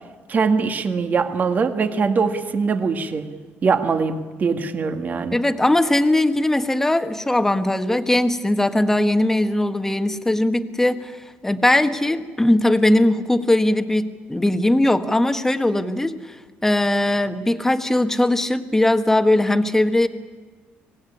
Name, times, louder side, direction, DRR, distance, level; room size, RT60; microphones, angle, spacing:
voice 1, 0.3-3.3 3.6-5.4, right 5 dB, 40° right, 7 dB, 1.9 m, -22 dB
voice 2, 5.3-11.2 11.4-16.4 16.6-20.1, left 1 dB, 10° left, 8 dB, 1.5 m, -19 dB
25.0 x 18.5 x 10.0 m, 1.4 s
cardioid pair, 110°, 4 cm